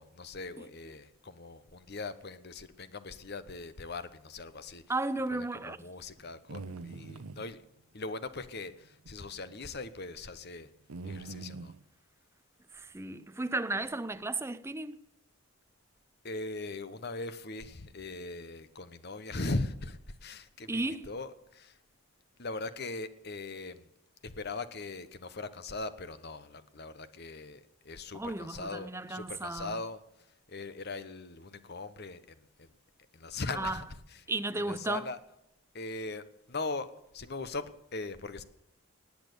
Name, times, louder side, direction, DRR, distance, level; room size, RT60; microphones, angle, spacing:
voice 1, 0.0-4.8 5.3-7.6 7.9-10.7 11.0-11.7 16.2-21.8 22.4-23.9 24.2-30.0 30.5-32.7 33.1-33.8 34.5-35.2 35.7-38.4, left 3 dB, 45° left, 1.0 m, -40 dB
voice 2, 4.9-5.8 12.7-15.1 20.7-21.1 28.1-29.8 33.5-33.8 34.3-35.1, right 2 dB, 10° right, 0.5 m, -34 dB
sound 1, 6.2-7.5 8.8-9.1 9.5-9.6 10.9-11.8, right 3 dB, 90° right, 0.8 m, -43 dB
18.5 x 8.7 x 6.9 m
head